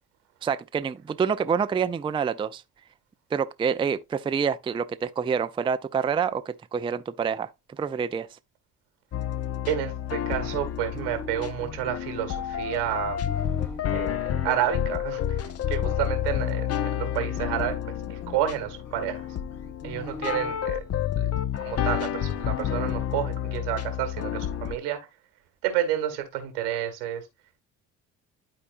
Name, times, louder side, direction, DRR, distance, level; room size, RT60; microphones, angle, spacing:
voice 1, 0.4-2.6 3.3-8.3, right 6 dB, 10° right, 0.4 m, -27 dB
sound 1, 9.1-24.8, left 10 dB, 35° left, 0.6 m, -30 dB
voice 2, 9.7-13.3 13.9-14.2 14.4-19.2 19.8-20.8 21.2-21.3 21.6-25.0 25.6-27.2, right 11 dB, 85° right, 1.7 m, -30 dB
sound 2, 10.2-14.9 15.6-20.5, left 3 dB, 70° left, 2.1 m, -43 dB
11.5 x 4.3 x 2.5 m
hypercardioid pair, 55°, 44 cm